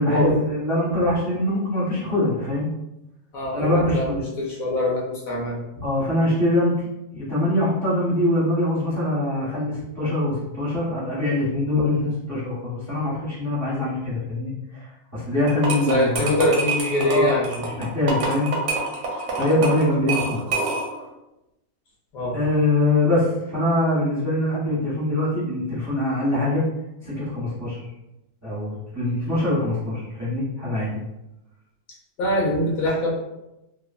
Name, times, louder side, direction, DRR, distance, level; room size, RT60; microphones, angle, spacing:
voice 1, 0.0-2.7 3.5-4.3 5.8-14.9 15.1-16.2 17.0-17.4 17.8-18.5 19.3-20.4 22.3-26.6 27.0-27.8 28.4-31.0, left 1 dB, 20° right, -10 dB, 0.4 m, -23 dB
voice 2, 3.3-5.6 15.9-17.5 22.1-22.4 32.2-33.1, left 1 dB, 65° left, -4 dB, 0.9 m, -23 dB
sound 1, 15.5-21.1, right 3 dB, 70° right, 0.7 m, -27 dB
2.9 x 2.0 x 2.4 m, 0.92 s
omnidirectional pair, 1.9 m